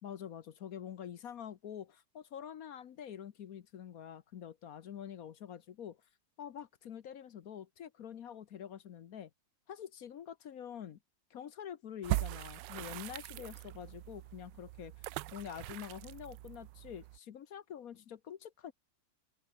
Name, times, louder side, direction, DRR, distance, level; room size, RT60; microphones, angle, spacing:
voice 1, 0.0-6.0 6.4-9.3 9.7-11.0 11.3-14.9 15.3-18.7, left 9 dB, 60° left, 1.2 m, -46 dB
sound 1, 12.0-17.2, right 17 dB, 85° right, 1.2 m, -40 dB
open air
omnidirectional pair, 1.9 m